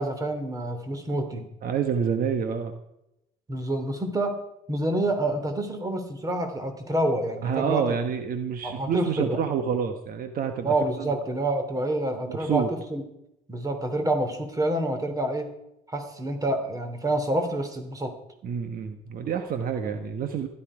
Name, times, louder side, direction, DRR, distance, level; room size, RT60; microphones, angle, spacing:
voice 1, 0.0-1.5 3.5-4.4 4.7-7.8 8.6-9.4 10.6-13.0 13.5-15.5 15.9-18.1, right 1 dB, 20° right, 7 dB, 2.9 m, -27 dB
voice 2, 1.6-2.8 7.4-11.1 12.3-12.7 18.4-20.5, right 7 dB, 60° right, 7 dB, 1.3 m, -28 dB
15.5 x 12.5 x 5.0 m, 0.86 s
cardioid pair, 110°, 17 cm